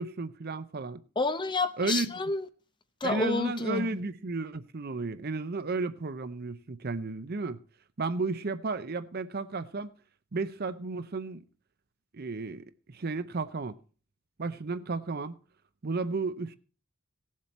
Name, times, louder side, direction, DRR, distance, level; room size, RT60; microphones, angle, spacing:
voice 1, 0.0-1.0 1.8-2.1 3.0-7.6 8.0-9.9 10.3-11.4 12.1-13.8 14.4-15.4 15.8-16.5, right 3 dB, 45° right, 0.6 m, -33 dB
voice 2, 1.2-2.5 3.0-4.0, left 3 dB, 20° left, 0.6 m, -29 dB
17.5 x 7.5 x 4.3 m
head